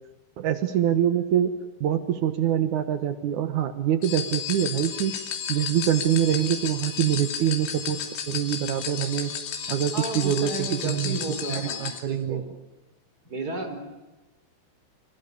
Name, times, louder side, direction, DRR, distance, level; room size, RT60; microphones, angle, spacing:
voice 1, 0.4-1.5 1.8-5.1 5.5-9.3 9.7-11.2 11.5-12.4, right 10 dB, 80° right, 10 dB, 1.7 m, -25 dB
sound 1, 4.0-12.0, left 8 dB, 85° left, 5.5 m, -33 dB
voice 2, 9.9-12.5 13.3-13.8, right 2 dB, 20° right, 6 dB, 4.4 m, -33 dB
29.5 x 26.0 x 6.8 m, 1.1 s
omnidirectional pair, 5.8 m